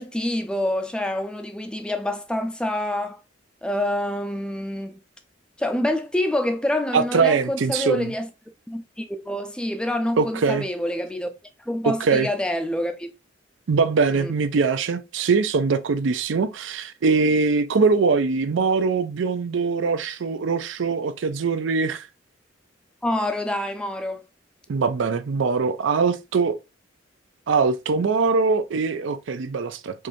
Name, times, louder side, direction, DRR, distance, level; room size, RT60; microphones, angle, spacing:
voice 1, 0.0-3.2 3.6-5.0 5.6-8.3 8.7-11.3 11.7-13.1 14.1-14.4 23.0-24.3, left 1 dB, 5° left, 0.4 m, -27 dB
voice 2, 6.9-8.1 10.2-10.6 11.8-12.3 13.7-22.1 24.7-26.6 27.5-30.1, right 4 dB, 75° right, 0.4 m, -22 dB
4.7 x 2.6 x 2.6 m
head